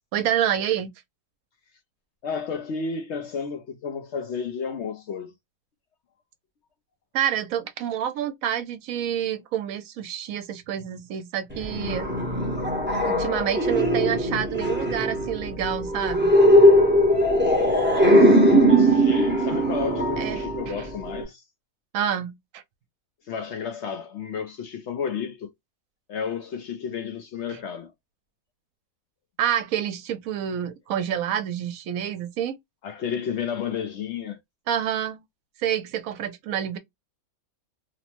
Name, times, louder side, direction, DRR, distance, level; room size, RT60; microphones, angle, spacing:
voice 1, 0.1-0.9 7.1-12.1 13.0-16.3 20.2-20.8 21.9-22.6 29.4-32.6 34.7-35.2 35.6-36.8, right 10 dB, 75° right, 1.0 m, -28 dB
voice 2, 2.2-5.3 18.5-21.4 23.3-25.5 26.1-27.9 32.8-34.4, left 6 dB, 65° left, 0.7 m, -31 dB
sound 1, 11.5-21.2, equal, 10° right, 0.7 m, -20 dB
2.9 x 2.0 x 2.8 m
omnidirectional pair, 1.5 m